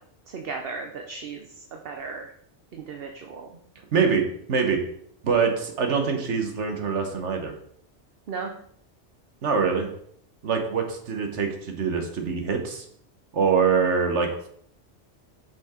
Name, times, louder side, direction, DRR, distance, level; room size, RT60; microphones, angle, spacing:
voice 1, 0.3-2.3 2.7-3.5 8.3-8.5, right 4 dB, 60° right, 3 dB, 0.9 m, -36 dB
voice 2, 3.9-4.8 5.2-7.5 9.4-9.9 10.4-12.8 13.3-14.5, right 5 dB, 80° right, 4 dB, 1.4 m, -24 dB
5.9 x 5.9 x 4.3 m, 0.65 s
omnidirectional pair, 1.2 m